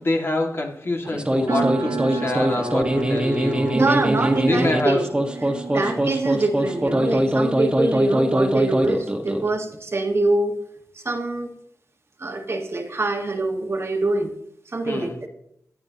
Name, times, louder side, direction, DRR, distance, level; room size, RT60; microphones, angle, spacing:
voice 1, 0.0-3.8 4.5-5.0 5.7-6.0 14.8-15.2, left 2 dB, 40° left, 2 dB, 2.1 m, -26 dB
sound 1, 1.1-9.5, equal, 15° right, 1.6 m, -22 dB
sound 2, 1.5-7.7, right 4 dB, 70° right, 1.2 m, -32 dB
voice 2, 3.7-5.1 5.4-10.6 11.0-11.5 12.2-14.3 14.7-15.3, right 2 dB, 45° right, 3 dB, 1.6 m, -24 dB
17.0 x 11.0 x 2.9 m, 0.73 s
wide cardioid pair, 90°, 6 cm